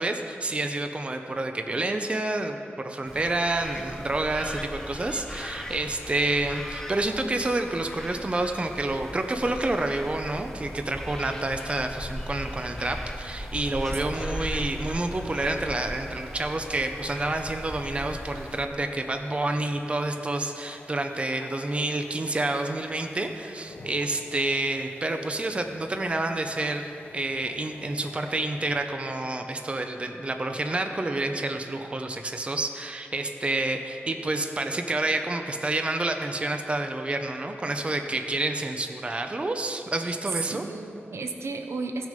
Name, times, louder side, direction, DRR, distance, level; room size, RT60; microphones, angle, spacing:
voice 1, 0.0-40.6, right 2 dB, 25° right, 5 dB, 0.6 m, -29 dB
sound 1, 3.1-18.7, equal, 10° left, 0.8 m, -38 dB
sound 2, 17.4-28.9, left 2 dB, 45° left, 1.2 m, -50 dB
voice 2, 40.4-42.1, right 3 dB, 80° right, 5 dB, 0.8 m, -34 dB
15.5 x 6.4 x 5.2 m, 2.5 s
wide cardioid pair, 115°, 4 cm